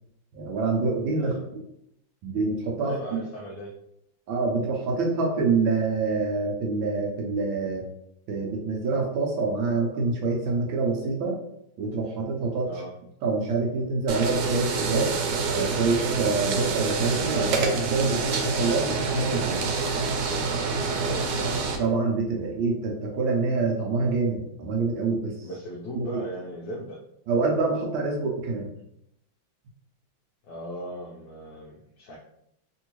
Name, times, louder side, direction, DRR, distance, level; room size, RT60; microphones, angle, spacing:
voice 1, 0.3-1.3 2.2-3.2 4.3-7.8 8.3-11.4 11.8-12.7 13.2-15.1 15.5-19.6 21.8-25.5 25.9-26.2 27.3-28.7, right 4 dB, 70° right, -1 dB, 1.3 m, -26 dB
voice 2, 2.8-3.7 12.7-12.9 20.8-21.5 25.4-27.0 30.4-32.2, right 1 dB, 75° left, -3 dB, 1.0 m, -38 dB
sound 1, 14.1-21.8, right 4 dB, 90° right, 1.5 m, -27 dB
3.5 x 2.6 x 2.9 m, 0.78 s
omnidirectional pair, 2.4 m